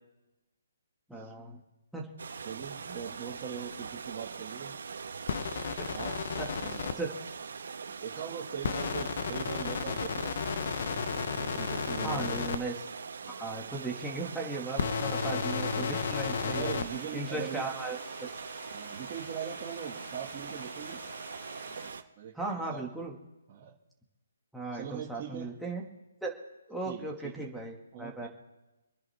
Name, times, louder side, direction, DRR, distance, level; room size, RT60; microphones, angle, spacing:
voice 1, 1.1-1.6 1.9-2.1 5.8-5.9 6.4-7.1 12.0-12.7 13.4-16.7 17.1-18.3 22.3-23.1 24.5-25.8 26.2-26.3 26.7-28.3, right 3 dB, ahead, -3 dB, 2.0 m, -37 dB
sound 1, 2.2-22.0, right 5 dB, 70° right, 1.2 m, -42 dB
voice 2, 2.4-5.0 5.9-7.0 7.9-10.4 11.1-12.5 13.2-13.4 16.5-17.6 18.7-21.0 21.6-22.8 23.5-23.7 24.7-25.6 26.9-27.5 27.9-28.3, right 8 dB, 25° right, -5 dB, 2.1 m, -41 dB
sound 2, 5.3-6.9 8.6-12.6 14.7-16.9, left 6 dB, 50° left, 0.9 m, -33 dB
Domestic sounds home sounds, 15.2-21.9, left 2 dB, 25° left, 3.7 m, -50 dB
27.0 x 10.5 x 3.6 m, 1.0 s
hypercardioid pair, 165°, 0 cm